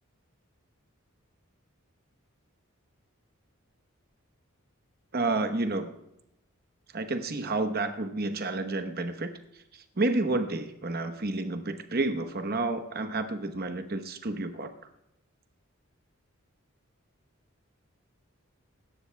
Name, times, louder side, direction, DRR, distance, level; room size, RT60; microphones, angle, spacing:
voice 1, 5.1-5.9 6.9-9.3 10.0-14.7, right 2 dB, 45° right, 8 dB, 1.0 m, -30 dB
23.5 x 12.0 x 2.2 m, 0.87 s
head